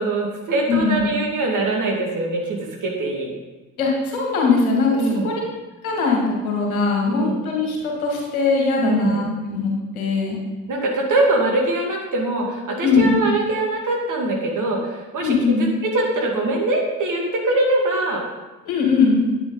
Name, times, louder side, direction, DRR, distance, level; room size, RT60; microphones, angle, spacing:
voice 1, 0.0-3.4 4.9-5.3 7.0-7.4 8.8-9.2 10.7-18.2, right 2 dB, 45° right, -1 dB, 2.5 m, -23 dB
voice 2, 0.7-1.1 3.8-5.4 5.8-10.4 12.8-13.2 15.2-15.7 18.7-19.3, left 4 dB, 80° left, -1 dB, 2.0 m, -20 dB
9.9 x 8.8 x 4.0 m, 1.1 s
figure-of-eight pair, 45°, 42 cm